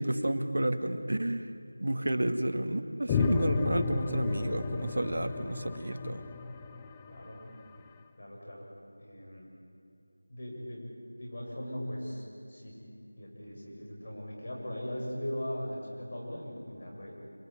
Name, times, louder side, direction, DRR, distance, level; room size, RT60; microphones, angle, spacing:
voice 1, 0.0-1.5 1.8-6.2, right 1 dB, 75° right, 7 dB, 2.1 m, -30 dB
sound 1, 3.1-7.8, left 5 dB, 10° left, 0.5 m, -33 dB
voice 2, 7.1-7.4 8.2-8.7 9.0-9.5 10.3-10.8 11.2-12.8 13.2-17.1, equal, 45° left, -2 dB, 7.8 m, -39 dB
27.5 x 20.5 x 9.6 m, 2.6 s
figure-of-eight pair, 175°, 0 cm